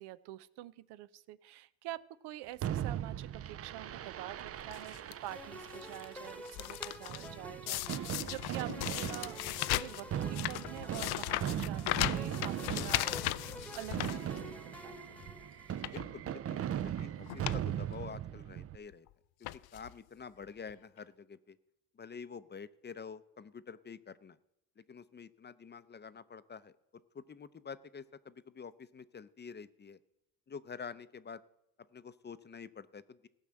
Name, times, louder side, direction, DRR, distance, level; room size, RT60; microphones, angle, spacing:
voice 1, 0.0-13.1 13.7-14.4 14.8-15.2, right 15 dB, 75° right, 16 dB, 0.6 m, -47 dB
Fireworks, 2.6-18.8, right 10 dB, 35° right, 0.5 m, -39 dB
sound 1, 4.7-5.1 5.7-6.0 6.3-7.3 7.7-14.8 15.1-15.3 15.7-16.1 16.9-17.0 17.3-17.6 17.9-18.0 18.9-19.1 19.4-19.9 20.7-20.8 21.0-21.1, left 17 dB, 70° left, 0.5 m, -37 dB
sound 2, 5.3-16.0, equal, 5° left, 1.2 m, -49 dB
voice 2, 15.9-19.1 19.7-21.6 22.0-24.4 24.8-26.7 27.1-30.0 30.5-31.4 31.9-33.3, left 6 dB, 25° left, 15 dB, 0.6 m, -48 dB
16.0 x 5.6 x 7.5 m, 0.88 s
supercardioid pair, 75°, 40 cm